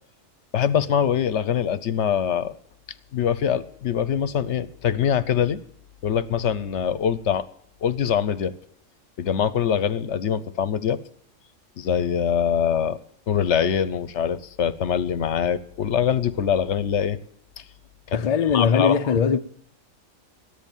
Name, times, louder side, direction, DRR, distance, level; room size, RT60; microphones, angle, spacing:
voice 1, 0.5-2.5 3.1-5.6 6.0-7.5 7.8-8.5 9.2-11.0 11.8-13.0 13.3-17.2 17.6-17.7 18.1-18.2 18.5-19.2, left 8 dB, 65° left, 1.0 m, -23 dB
voice 2, 18.1-19.4, left 6 dB, 45° left, 0.5 m, -20 dB
14.0 x 11.0 x 7.2 m
omnidirectional pair, 1.3 m